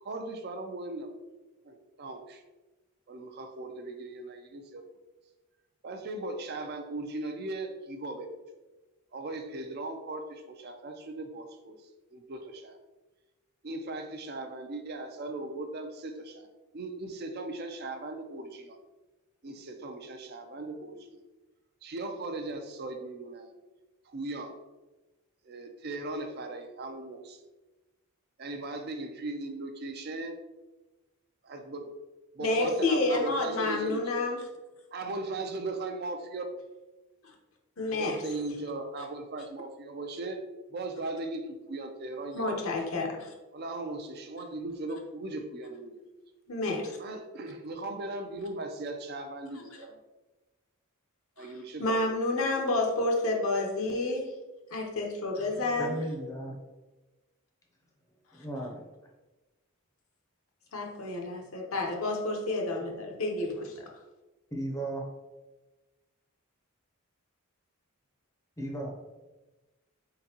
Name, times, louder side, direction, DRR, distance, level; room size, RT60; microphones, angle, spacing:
voice 1, 0.0-1.1 1.6-2.4 3.1-4.8 5.8-8.4 9.1-11.8 12.1-12.8 13.6-16.5 16.7-18.8 19.4-21.2 21.8-23.5 24.1-24.5 25.4-27.4 28.4-30.3 31.4-31.9 32.3-34.2 34.9-36.4 37.9-40.4 40.7-42.6 43.5-45.9 47.0-50.0 51.4-52.1, right 2 dB, 45° right, 5 dB, 0.5 m, -38 dB
voice 2, 32.4-34.4 37.8-38.2 42.3-43.3 46.5-47.0 51.4-51.5 51.8-54.3 54.7-56.0 60.7-63.7, left 2 dB, 70° left, 1 dB, 0.9 m, -29 dB
voice 3, 55.8-56.6 58.3-58.9 64.5-65.0 68.6-68.9, right 1 dB, 15° left, 0 dB, 0.6 m, -35 dB
4.5 x 3.8 x 2.8 m, 1.1 s
head